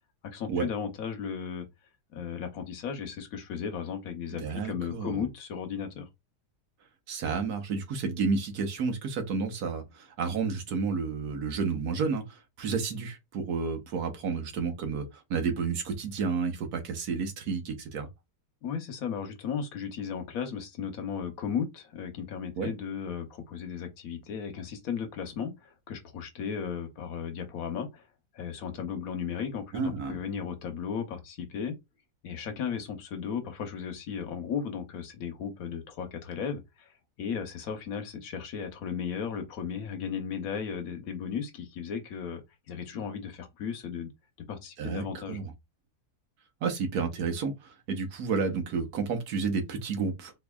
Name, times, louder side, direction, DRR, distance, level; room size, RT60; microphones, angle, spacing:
voice 1, 0.2-1.6 2.1-6.1 18.6-28.0 28.3-31.7 32.2-36.9 37.2-44.1 44.5-45.4, left 7 dB, 65° left, 1.2 m, -35 dB
voice 2, 4.4-5.2 7.1-15.0 15.3-18.1 22.6-22.7 29.7-30.2 44.8-45.5 46.6-50.3, right 5 dB, 75° right, 1.4 m, -31 dB
4.4 x 2.7 x 2.3 m
omnidirectional pair, 1.7 m